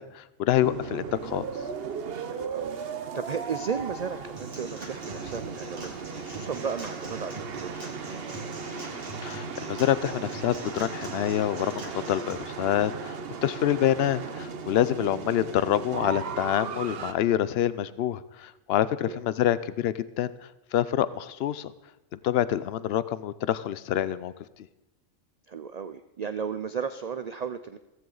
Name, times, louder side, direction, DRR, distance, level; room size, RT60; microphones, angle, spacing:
voice 1, 0.0-1.5 8.7-20.3 20.7-21.7 22.1-24.3, left 11 dB, 60° left, 16 dB, 0.7 m, -27 dB
sound 1, 0.6-17.1, right 5 dB, 55° right, 1.0 m, -37 dB
voice 2, 2.3-7.9 14.9-15.2 19.1-19.2 25.5-27.8, right 6 dB, 80° right, 11 dB, 0.3 m, -35 dB
Human voice / Acoustic guitar / Drum, 4.4-12.4, right 1 dB, 30° right, 2.0 m, -43 dB
15.5 x 15.0 x 4.0 m, 0.99 s
omnidirectional pair, 1.4 m